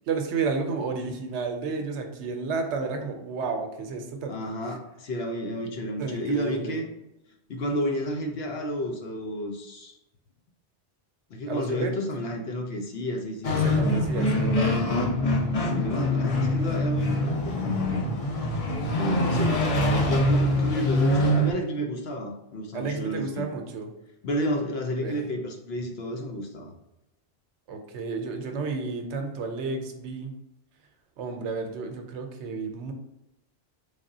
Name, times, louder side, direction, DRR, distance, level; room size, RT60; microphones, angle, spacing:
voice 1, 0.1-4.4 6.0-6.8 11.5-12.0 13.6-14.7 22.7-23.9 25.0-25.2 27.7-30.3 31.2-32.9, right 4 dB, 80° right, 5 dB, 0.9 m, -31 dB
voice 2, 4.3-6.9 7.5-9.9 11.3-13.6 15.6-18.1 18.9-19.6 20.1-23.5 24.2-26.7, equal, 65° left, 2 dB, 0.8 m, -31 dB
sound 1, 13.4-21.5, left 1 dB, 40° left, 0.5 m, -24 dB
3.4 x 3.4 x 2.7 m, 0.91 s
omnidirectional pair, 1.2 m